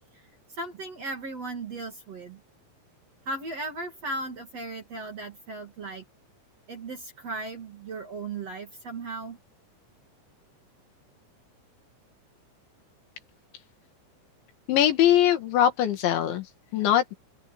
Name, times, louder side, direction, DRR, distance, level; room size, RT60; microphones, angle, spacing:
voice 1, 0.5-2.4 3.3-6.0 6.7-9.4, right 2 dB, 40° right, 2.8 m, -36 dB
voice 2, 14.7-17.2, left 11 dB, 70° left, 4.2 m, -22 dB
omnidirectional pair, 5.5 m